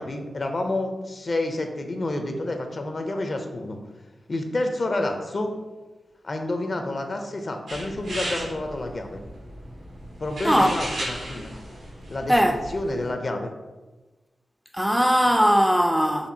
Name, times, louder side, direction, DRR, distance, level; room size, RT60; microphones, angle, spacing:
voice 1, 0.0-3.8 4.3-5.5 6.2-9.2 10.2-11.5 12.1-13.5, left 2 dB, 50° left, 0.5 m, -29 dB
sound 1, 7.7-13.1, right 1 dB, 90° right, 1.2 m, -35 dB
voice 2, 12.3-12.6 14.7-16.3, equal, 5° right, 0.3 m, -19 dB
4.2 x 2.5 x 2.7 m
cardioid pair, 50°, 0 cm